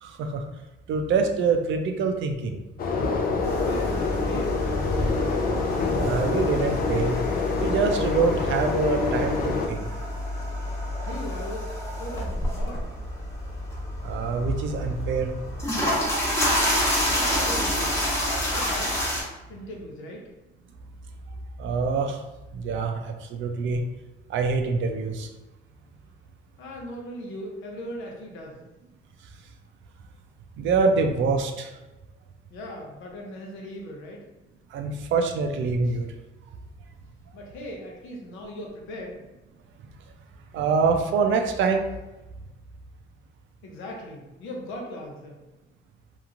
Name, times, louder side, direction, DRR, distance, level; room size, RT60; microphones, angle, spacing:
voice 1, 0.0-0.5 0.9-2.6 6.0-7.2 7.6-9.9 14.0-15.3 21.6-22.2 22.5-23.8 24.3-25.3 30.6-31.7 34.7-36.1 40.5-41.9, right 4 dB, 75° right, 5 dB, 0.5 m, -25 dB
sound 1, 2.8-9.7, left 4 dB, 45° left, 0.4 m, -26 dB
sound 2, 3.4-19.2, left 1 dB, 15° left, 1.1 m, -29 dB
voice 2, 3.6-5.0 10.6-10.7 11.0-11.7 12.0-12.9 17.1-18.0 18.5-19.1 19.5-20.3 26.6-28.6 32.5-34.3 35.8-36.0 37.3-39.2 43.6-45.4, equal, 90° left, 0 dB, 0.7 m, -39 dB
2.9 x 2.5 x 2.4 m, 1.0 s
cardioid pair, 90°, 20 cm